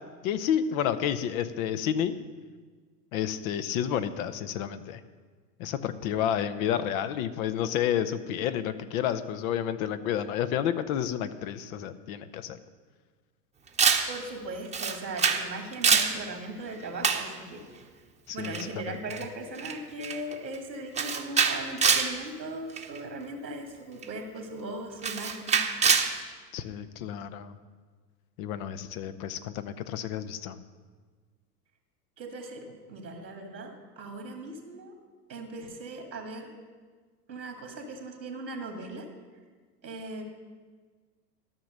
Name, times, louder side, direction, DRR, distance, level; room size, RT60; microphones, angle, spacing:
voice 1, 0.2-2.1 3.1-5.0 5.6-12.6 18.3-18.6 18.9-19.0 26.5-27.5 28.4-30.6, left 9 dB, 55° left, 11 dB, 0.9 m, -30 dB
Camera, 13.8-14.1 14.7-15.5 15.7-16.2 17.0-17.3 18.4-18.6 19.1-19.2 19.6-19.8 20.0-20.3 21.0-22.1 22.8-23.0 24.0-24.1 25.0-26.1, right 6 dB, 15° right, 0.9 m, -24 dB
voice 2, 14.1-17.9 18.3-25.6 32.2-34.9 35.3-36.5 37.3-39.1 39.8-40.2, right 2 dB, 90° right, 3 dB, 2.1 m, -39 dB
13.0 x 6.0 x 6.5 m, 1.5 s
hypercardioid pair, 90°, 50 cm